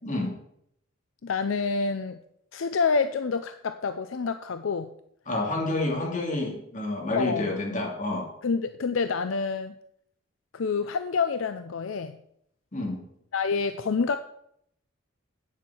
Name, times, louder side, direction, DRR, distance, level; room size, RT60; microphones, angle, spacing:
voice 1, 0.0-0.3 5.3-8.3 12.7-13.0, left 2 dB, 40° left, 1 dB, 2.6 m, -29 dB
voice 2, 1.2-2.2 2.5-4.9 7.1-7.5 8.4-9.7 10.5-12.2 13.3-14.2, left 5 dB, 75° left, 10 dB, 0.5 m, -27 dB
8.7 x 7.4 x 6.2 m, 0.72 s
head